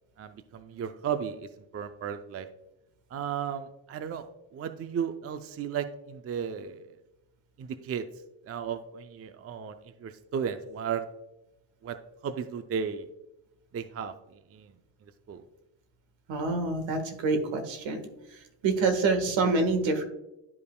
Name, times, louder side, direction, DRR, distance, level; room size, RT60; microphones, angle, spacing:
voice 1, 0.2-2.5 3.1-4.3 4.5-6.9 7.6-8.1 8.4-11.1 11.8-12.0 12.2-13.1 13.7-14.7 15.0-15.4, right 7 dB, 30° right, 9 dB, 0.4 m, -35 dB
voice 2, 16.3-18.0 18.6-20.0, right 3 dB, 70° right, 7 dB, 1.5 m, -26 dB
11.5 x 5.3 x 2.2 m, 0.93 s
cardioid pair, 105°, 48 cm